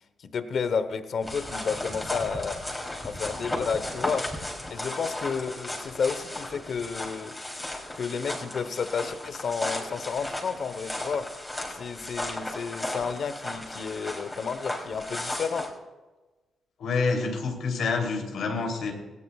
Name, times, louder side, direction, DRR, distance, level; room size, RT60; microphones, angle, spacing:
voice 1, 0.2-2.6 3.0-4.3 4.7-7.3 7.9-11.3 11.7-15.7, left 6 dB, 60° left, 11 dB, 0.9 m, -31 dB
sound 1, 1.2-15.7, left 1 dB, 15° left, 3.3 m, -35 dB
voice 2, 16.8-18.9, left 4 dB, 80° left, 2 dB, 3.1 m, -27 dB
18.5 x 16.0 x 2.4 m, 1.2 s
cardioid pair, 95°, 0 cm